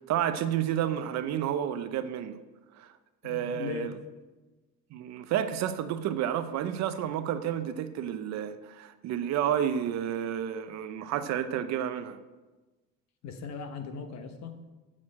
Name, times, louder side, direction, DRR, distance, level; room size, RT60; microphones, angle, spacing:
voice 1, 0.1-2.4 2.8-2.9 3.2-3.9 4.9-12.2, right 10 dB, 60° right, 0.7 m, -30 dB
voice 2, 3.2-3.9 13.2-14.6, left 6 dB, 60° left, 1.2 m, -38 dB
7.5 x 6.2 x 7.6 m
cardioid pair, 145°, 31 cm